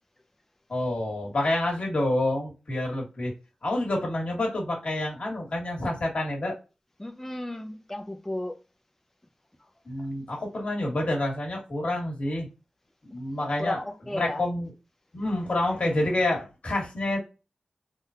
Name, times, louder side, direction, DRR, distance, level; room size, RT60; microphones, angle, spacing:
voice 1, 0.7-3.3 3.6-6.5 9.8-12.5 13.0-13.8 14.1-14.7 15.1-17.2, left 1 dB, 65° left, 1.5 m, -28 dB
voice 2, 7.0-8.6 13.6-14.4, left 1 dB, 15° left, 0.4 m, -34 dB
3.6 x 2.2 x 2.7 m
cardioid pair, 55°, 2 cm